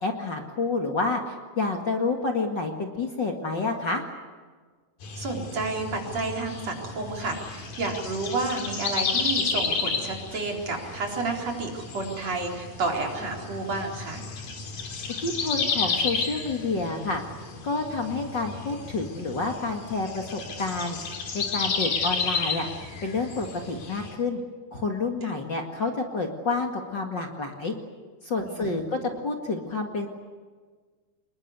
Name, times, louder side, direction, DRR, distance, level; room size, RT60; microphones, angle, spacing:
voice 1, 0.0-4.0 15.2-17.2 17.6-21.0 21.3-22.7 23.0-24.4 24.7-27.7 28.2-29.0 29.2-30.1, left 3 dB, 40° left, 2 dB, 2.4 m, -29 dB
sound 1, 5.0-24.2, left 5 dB, 85° left, 4.7 m, -32 dB
voice 2, 5.2-14.2 25.2-25.3 28.5-29.1, right 3 dB, 55° right, 0 dB, 5.2 m, -31 dB
26.5 x 22.0 x 8.2 m, 1.5 s
omnidirectional pair, 3.5 m